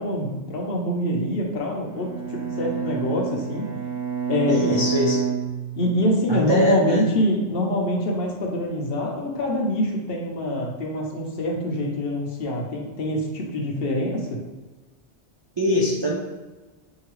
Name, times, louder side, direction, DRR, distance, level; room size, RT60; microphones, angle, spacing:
voice 1, 0.0-3.7 4.3-4.8 5.7-14.4, left 1 dB, 60° left, 0 dB, 0.9 m, -25 dB
Bowed string instrument, 1.8-6.2, right 7 dB, 80° right, 1.7 m, -29 dB
voice 2, 4.5-5.3 6.3-7.1 15.6-16.2, equal, 40° right, -5 dB, 0.4 m, -22 dB
4.7 x 2.7 x 3.0 m, 1.2 s
omnidirectional pair, 1.2 m